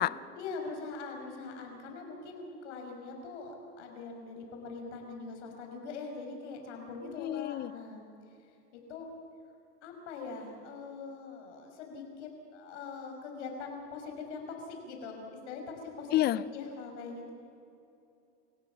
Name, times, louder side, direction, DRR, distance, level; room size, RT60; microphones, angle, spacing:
voice 1, 0.3-8.0 8.7-9.1 9.8-17.3, left 4 dB, 75° left, 3 dB, 5.9 m, -42 dB
voice 2, 7.2-7.7 16.1-16.4, left 14 dB, 30° left, 18 dB, 0.6 m, -28 dB
28.5 x 16.5 x 7.4 m, 2.7 s
supercardioid pair, 130°, 35 cm